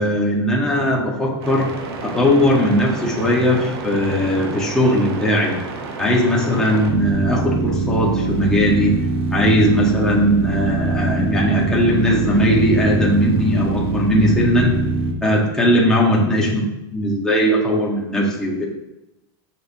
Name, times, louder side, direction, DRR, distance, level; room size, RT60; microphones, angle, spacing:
voice 1, 0.0-1.7 2.0-5.5 6.0-9.0 9.3-14.8 15.2-16.6 16.9-18.7, equal, 5° left, -4 dB, 1.7 m, -18 dB
sound 1, 1.4-15.1, right 3 dB, 75° right, 1.5 m, -25 dB
10.5 x 6.9 x 3.0 m, 0.91 s
supercardioid pair, 160°, 13 cm